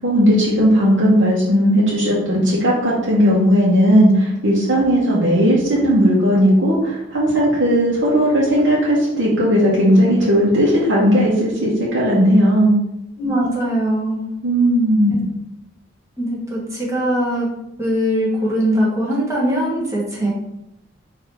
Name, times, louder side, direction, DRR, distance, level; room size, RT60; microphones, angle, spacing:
voice 1, 0.0-12.7 14.4-15.1, equal, 75° right, -7 dB, 1.0 m, -16 dB
voice 2, 13.2-14.2 15.1-15.2 16.2-17.5 17.8-20.3, equal, 15° right, -4 dB, 1.2 m, -21 dB
4.0 x 2.8 x 4.2 m, 0.85 s
head